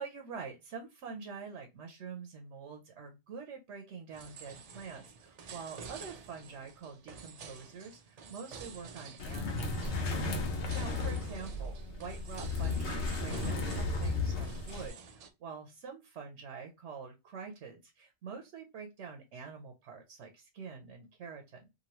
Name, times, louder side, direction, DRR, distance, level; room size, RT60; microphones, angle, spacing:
voice 1, 0.0-10.4 10.7-21.7, right 5 dB, 80° right, 3 dB, 0.9 m, -46 dB
sound 1, 4.1-15.3, right 5 dB, 60° right, 0.4 m, -50 dB
sound 2, 9.2-14.9, left 3 dB, 75° left, 1.1 m, -34 dB
2.8 x 2.6 x 2.9 m, 0.24 s
omnidirectional pair, 1.2 m